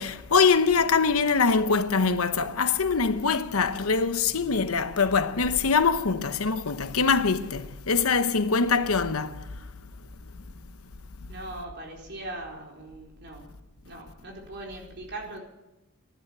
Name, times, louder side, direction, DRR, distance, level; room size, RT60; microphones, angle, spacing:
voice 1, 0.0-9.4, left 5 dB, 85° left, 1.0 m, -23 dB
voice 2, 11.3-13.5 13.8-15.4, right 2 dB, 55° right, 4.4 m, -40 dB
14.0 x 11.0 x 8.7 m
head